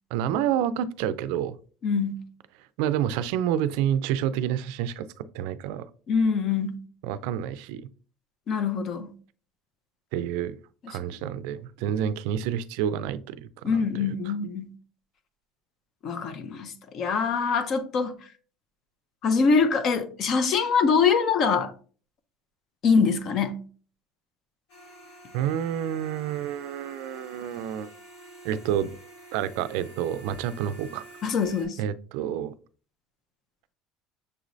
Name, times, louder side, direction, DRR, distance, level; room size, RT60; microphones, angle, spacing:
voice 1, 0.1-1.6 2.8-5.9 7.0-7.9 10.1-10.6 10.9-14.1 25.3-27.9 28.4-28.9 29.3-31.0 31.8-32.5, right 10 dB, 80° right, 0.3 m, -29 dB
voice 2, 1.8-2.3 6.1-6.8 8.5-9.1 13.6-14.7 16.0-18.1 19.2-21.7 22.8-23.6 31.2-31.8, left 5 dB, 40° left, 0.6 m, -24 dB
sound 1, 24.7-31.7, right 2 dB, 75° left, 2.5 m, -48 dB
6.6 x 3.0 x 2.6 m
cardioid pair, 150°, 0 cm